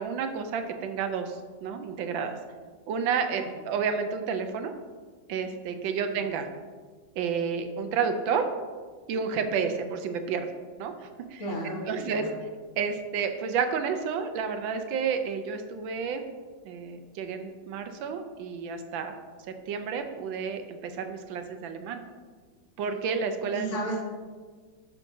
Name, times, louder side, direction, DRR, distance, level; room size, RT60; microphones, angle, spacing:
voice 1, 0.0-2.4 2.9-4.7 5.3-6.5 7.2-8.5 9.1-10.5 10.8-11.4 11.9-12.3 12.8-16.2 16.6-19.1 19.7-22.0 22.8-23.8, right 6 dB, 85° right, 7 dB, 1.4 m, -30 dB
voice 2, 11.4-12.3 23.5-24.0, right 1 dB, 45° left, -5 dB, 1.5 m, -34 dB
10.5 x 5.8 x 2.7 m, 1.5 s
omnidirectional pair, 2.1 m